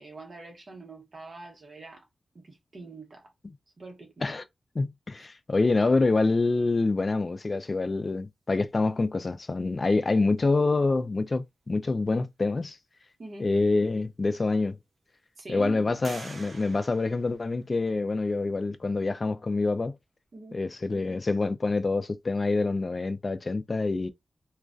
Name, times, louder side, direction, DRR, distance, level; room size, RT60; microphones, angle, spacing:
voice 1, 0.0-2.1 2.3-3.3 3.8-4.3 5.2-5.3 13.2-13.5 15.4-16.0 20.3-20.6, right 2 dB, 50° right, 0.9 m, -44 dB
voice 2, 4.8-12.8 13.4-14.8 15.5-19.9 20.5-24.1, left 3 dB, 40° left, 0.3 m, -26 dB
sound 1, 13.8-13.9 14.5-15.1 16.0-18.0, right 3 dB, 65° right, 0.7 m, -47 dB
2.3 x 2.1 x 2.5 m
wide cardioid pair, 90°, 0 cm